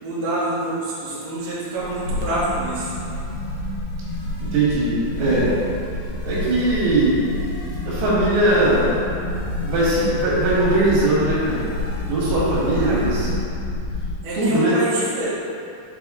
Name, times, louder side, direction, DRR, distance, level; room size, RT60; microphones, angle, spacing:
voice 1, 0.0-2.9 12.8-13.0 14.2-15.3, right 1 dB, 60° right, -9 dB, 2.1 m, -26 dB
sound 1, 1.8-13.5, right 3 dB, 70° left, 1.8 m, -38 dB
sound 2, 2.0-14.2, left 2 dB, 85° left, 2.6 m, -28 dB
voice 2, 4.4-5.5 6.3-7.2 7.9-9.0 9.6-11.7 12.1-13.3 14.4-14.8, right 2 dB, 85° right, -7 dB, 3.6 m, -20 dB
7.3 x 4.0 x 3.6 m, 2.5 s
omnidirectional pair, 4.5 m